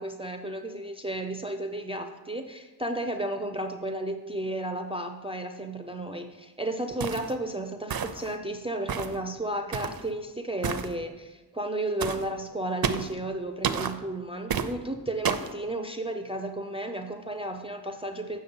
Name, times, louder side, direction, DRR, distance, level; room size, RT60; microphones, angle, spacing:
voice 1, 0.0-18.4, right 1 dB, 15° right, 6 dB, 0.5 m, -33 dB
sound 1, 7.0-7.3 7.9-8.3 8.9-9.2 9.7-10.0 10.6-10.9 12.0-12.2 12.8-13.1 13.6-13.9 14.5-14.7 15.2-15.5, right 7 dB, 55° right, 0.6 m, -30 dB
8.0 x 6.4 x 5.4 m, 1.2 s
wide cardioid pair, 100°, 42 cm